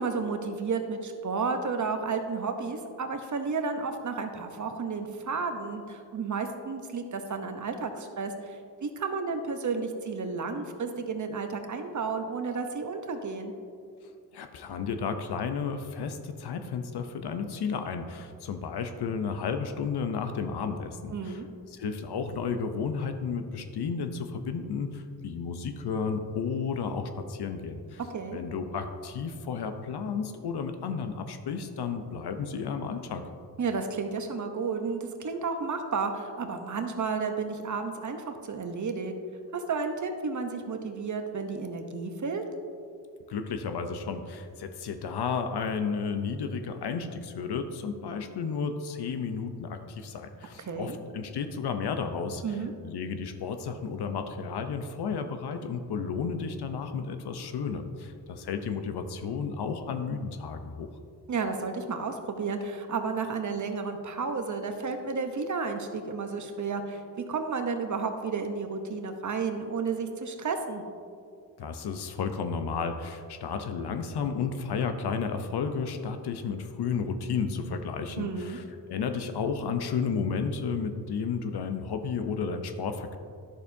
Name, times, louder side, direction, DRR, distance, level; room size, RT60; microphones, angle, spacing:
voice 1, 0.0-13.5 21.1-21.5 28.1-28.4 33.6-39.1 39.5-42.4 50.6-51.0 52.4-52.7 61.3-67.0 67.3-70.8 78.2-78.6, right 4 dB, 45° right, 6 dB, 0.9 m, -32 dB
voice 2, 14.3-21.4 21.8-28.0 28.3-33.2 43.3-52.4 52.8-60.9 71.6-78.6 78.9-83.2, left 5 dB, 65° left, 8 dB, 0.8 m, -32 dB
11.0 x 6.6 x 2.7 m, 2.3 s
cardioid pair, 75°, 42 cm